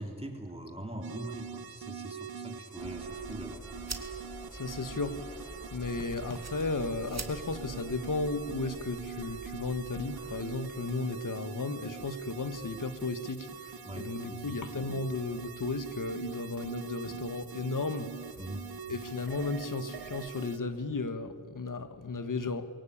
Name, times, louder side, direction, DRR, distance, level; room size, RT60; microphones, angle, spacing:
voice 1, 0.0-3.6 13.9-14.6 18.4-18.7, right 1 dB, 15° right, 2 dB, 3.6 m, -42 dB
sound 1, 1.0-20.6, right 7 dB, 80° right, 1.0 m, -43 dB
sound 2, 2.8-10.4, equal, 5° left, 7.3 m, -48 dB
sound 3, 3.1-11.0, right 3 dB, 45° right, 2.0 m, -49 dB
voice 2, 4.5-18.1 18.9-22.7, left 3 dB, 60° left, 10 dB, 1.5 m, -35 dB
22.5 x 17.5 x 8.7 m, 2.1 s
cardioid pair, 50°, 37 cm